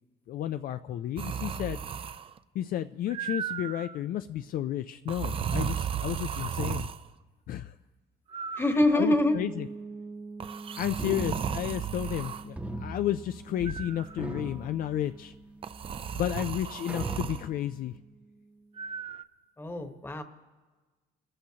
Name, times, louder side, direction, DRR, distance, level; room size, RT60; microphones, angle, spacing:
voice 1, 0.3-1.8 2.5-6.9 7.5-7.7 8.9-9.7 10.8-15.3 16.1-17.9, left 12 dB, 60° left, 10 dB, 0.4 m, -32 dB
sound 1, 1.2-2.4 3.1-4.0 5.1-7.0 8.3-9.3 10.4-12.4 13.7-14.4 15.6-17.4 18.8-19.2, right 7 dB, 35° right, 0.5 m, -35 dB
voice 2, 8.5-9.4 19.6-20.2, left 1 dB, 15° left, 7 dB, 1.2 m, -25 dB
sound 2, 9.1-18.8, right 3 dB, 65° right, 1.8 m, -47 dB
sound 3, 11.0-12.2 12.6-13.9 14.1-15.4 16.0-16.1 16.9-17.7, right 1 dB, 10° right, 0.9 m, -39 dB
27.0 x 14.5 x 2.9 m, 1.3 s
cardioid pair, 110°, 17 cm